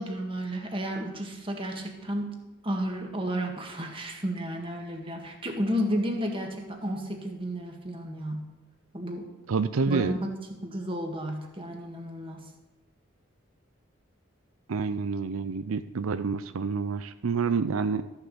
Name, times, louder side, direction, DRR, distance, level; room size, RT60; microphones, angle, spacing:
voice 1, 0.0-2.4 2.6-8.5 8.9-9.3 9.9-10.3 10.6-12.5, equal, 25° right, 2 dB, 1.7 m, -32 dB
voice 2, 9.5-10.2 14.7-18.0, right 5 dB, 85° right, 11 dB, 0.5 m, -28 dB
13.5 x 6.8 x 7.0 m, 1.0 s
head